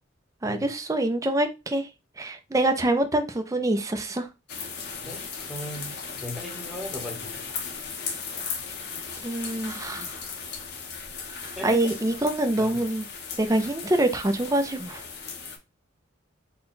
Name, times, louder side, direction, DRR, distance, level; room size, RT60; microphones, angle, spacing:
voice 1, 0.4-1.9 2.2-4.3 9.2-10.2 11.3-13.1 13.4-15.0, right 1 dB, 15° right, 0.4 m, -25 dB
sound 1, 4.5-15.6, left 5 dB, 55° left, 0.8 m, -37 dB
voice 2, 5.0-7.4 11.6-11.9 12.6-12.8, left 1 dB, ahead, 1.0 m, -38 dB
3.9 x 2.2 x 4.0 m
head